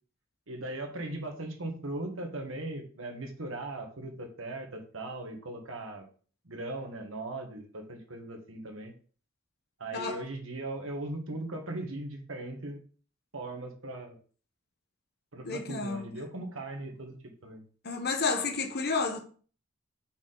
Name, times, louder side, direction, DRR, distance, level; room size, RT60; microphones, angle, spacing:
voice 1, 0.5-6.0 6.4-8.9 9.8-12.8 13.3-14.2 15.3-17.6, right 2 dB, 85° right, 1.5 m, -39 dB
voice 2, 9.9-10.2 15.4-16.1 17.8-19.2, left 4 dB, 55° left, 1.1 m, -31 dB
5.7 x 4.3 x 3.9 m
head